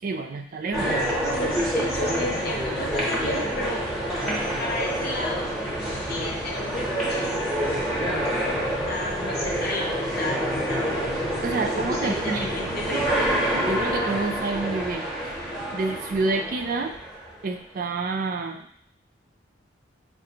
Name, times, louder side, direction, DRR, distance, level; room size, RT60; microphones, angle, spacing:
voice 1, 0.0-1.2 7.8-7.9 11.4-12.8 13.6-15.3 15.7-17.0 17.4-18.7, right 3 dB, 45° right, 4 dB, 0.4 m, -29 dB
sound 1, 0.7-17.3, equal, ahead, 0.8 m, -27 dB
voice 2, 0.8-3.8 4.6-5.5 6.1-10.4 10.7-10.9 11.5-13.3, left 2 dB, 55° left, -2 dB, 0.9 m, -34 dB
4.9 x 2.5 x 2.8 m, 0.62 s
head